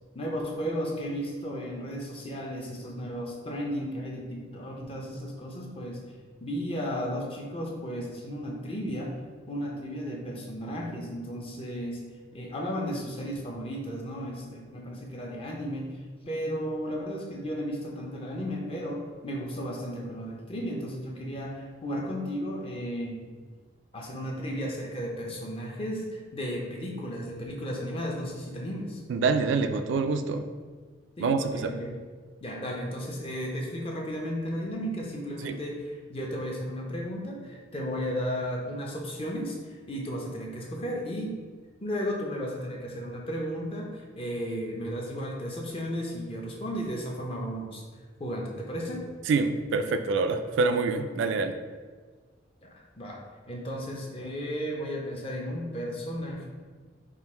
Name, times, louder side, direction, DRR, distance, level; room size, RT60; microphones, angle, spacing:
voice 1, 0.1-6.0 6.4-9.1 9.5-12.0 12.3-15.9 16.3-23.3 23.9-29.0 31.2-32.0 32.4-41.4 41.8-47.8 48.2-49.1 52.6-53.2 53.5-56.5, equal, 30° left, -1 dB, 0.5 m, -34 dB
voice 2, 29.1-30.4 31.2-31.7 35.4-35.6 49.3-51.6, right 4 dB, 75° right, 9 dB, 0.3 m, -26 dB
3.7 x 2.5 x 4.2 m, 1.5 s
head